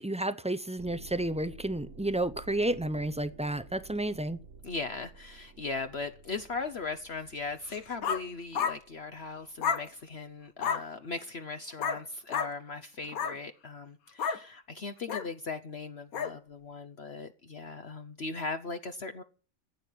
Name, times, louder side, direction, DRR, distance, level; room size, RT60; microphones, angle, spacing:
voice 1, 0.0-4.4, right 1 dB, 10° right, 0.4 m, -31 dB
sound 1, 0.8-10.2, right 3 dB, 60° right, 2.2 m, -52 dB
voice 2, 4.6-19.2, left 4 dB, 50° left, 1.1 m, -38 dB
sound 2, 7.7-8.2 8.5-8.8 9.6-9.9 10.6-10.8 11.8-12.0 12.3-12.5 13.0-13.4 14.2-14.4 15.1-15.3 16.1-16.3, left 6 dB, 80° left, 1.6 m, -31 dB
14.5 x 8.7 x 9.4 m
omnidirectional pair, 1.5 m